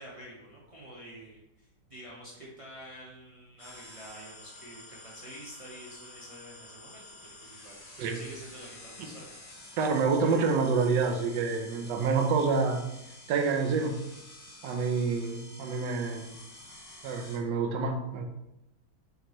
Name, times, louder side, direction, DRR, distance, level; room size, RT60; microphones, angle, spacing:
voice 1, 0.0-7.9 8.1-9.3, right 1 dB, 35° right, -6 dB, 0.6 m, -48 dB
sound 1, 3.6-17.4, left 2 dB, 80° left, 2.2 m, -50 dB
voice 2, 9.8-12.8 13.3-14.0 14.6-16.3 17.0-18.2, right 4 dB, 80° right, 4 dB, 1.3 m, -27 dB
5.2 x 2.9 x 3.0 m, 0.89 s
omnidirectional pair, 1.9 m